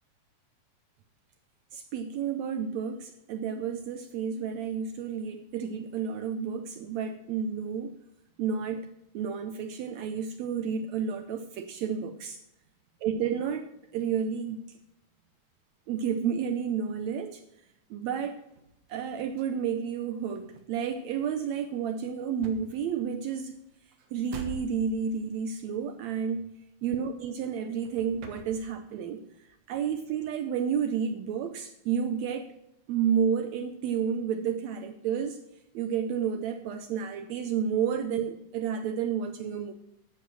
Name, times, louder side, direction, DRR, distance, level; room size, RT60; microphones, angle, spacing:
voice 1, 1.7-7.9 8.4-12.4 13.0-14.8 15.9-17.4 17.9-18.4 18.9-23.6 24.1-29.3 29.7-32.6 32.9-35.4 35.7-39.7, right 7 dB, 80° right, 8 dB, 1.6 m, -31 dB
sound 1, 18.2-27.5 27.8-29.1 29.3-30.9, right 1 dB, 55° right, 2.2 m, -49 dB
11.5 x 7.5 x 6.1 m, 0.85 s
omnidirectional pair, 3.8 m